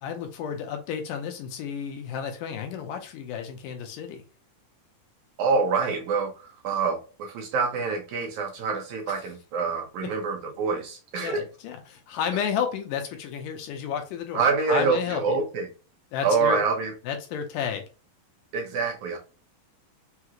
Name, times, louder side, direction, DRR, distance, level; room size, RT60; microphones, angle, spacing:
voice 1, 0.0-4.2 9.1-9.2 10.0-10.1 11.2-15.4 16.1-16.6 17.1-17.9, left 8 dB, 80° left, 2.1 m, -32 dB
voice 2, 5.4-6.3 6.6-11.4 14.3-15.7 16.2-16.9 18.5-19.2, right 5 dB, 75° right, 1.9 m, -26 dB
5.6 x 3.0 x 2.4 m
omnidirectional pair, 4.0 m